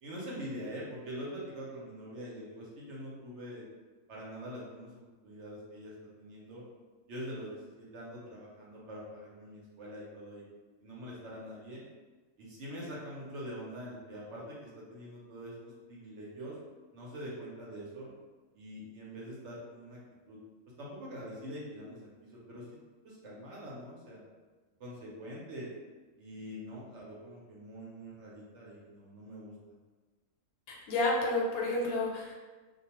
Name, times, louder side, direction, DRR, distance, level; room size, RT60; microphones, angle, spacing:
voice 1, 0.0-3.6 4.1-6.6 7.1-10.5 10.8-11.8 12.4-15.5 15.9-16.5 16.9-18.1 18.5-20.0 20.3-20.4 20.8-22.8 23.0-24.2 24.8-25.7 26.2-29.5, equal, 65° right, -5 dB, 0.8 m, -44 dB
voice 2, 30.7-32.3, left 2 dB, 90° left, -1 dB, 1.1 m, -30 dB
2.3 x 2.2 x 2.8 m, 1.3 s
omnidirectional pair, 1.5 m